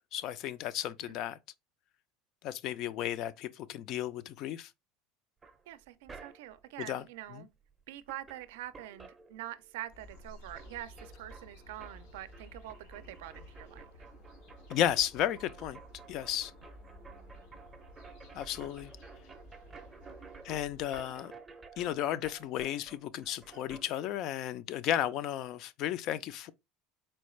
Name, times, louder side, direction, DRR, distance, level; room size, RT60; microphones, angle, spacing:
voice 1, 0.1-1.4 2.4-4.7 6.9-7.0 7.3-7.5 14.7-15.8 16.1-16.5 18.3-18.9 20.4-21.3 21.8-26.5, left 11 dB, 45° left, 0.3 m, -33 dB
sound 1, 5.4-6.7 7.7-7.8 8.0-9.9 10.1-23.9, right 4 dB, 15° right, 0.5 m, -53 dB
voice 2, 5.7-7.5 7.9-13.8, right 13 dB, 90° right, 0.4 m, -45 dB
sound 2, 9.9-20.8, left 1 dB, 80° left, 2.0 m, -54 dB
4.3 x 2.3 x 3.1 m
cardioid pair, 150°, 0 cm